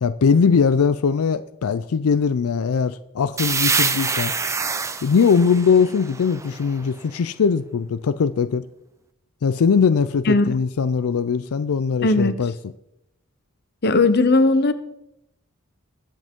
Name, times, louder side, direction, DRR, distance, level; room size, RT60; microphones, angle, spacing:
voice 1, 0.0-4.3 5.0-8.6 9.4-12.5, left 6 dB, 85° left, 0.4 m, -20 dB
sound 1, 3.4-7.0, right 4 dB, 15° right, 0.5 m, -26 dB
voice 2, 12.0-12.4 13.8-14.7, left 2 dB, 50° left, 0.8 m, -17 dB
21.0 x 7.6 x 3.7 m
head